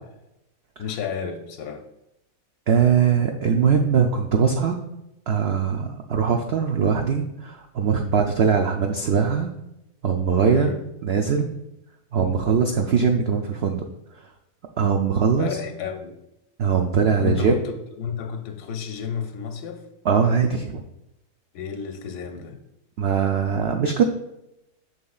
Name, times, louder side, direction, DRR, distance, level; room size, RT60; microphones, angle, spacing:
voice 1, 0.8-1.8 2.8-3.0 10.4-10.8 15.4-16.2 17.2-19.8 21.5-22.6, left 7 dB, 85° left, 1.2 m, -31 dB
voice 2, 2.7-4.8 5.3-9.5 10.0-10.7 11.0-11.6 12.1-13.8 14.8-15.5 16.6-17.5 20.0-20.8 23.0-24.0, right 6 dB, 75° right, 0.5 m, -21 dB
6.8 x 6.5 x 2.3 m
omnidirectional pair, 1.7 m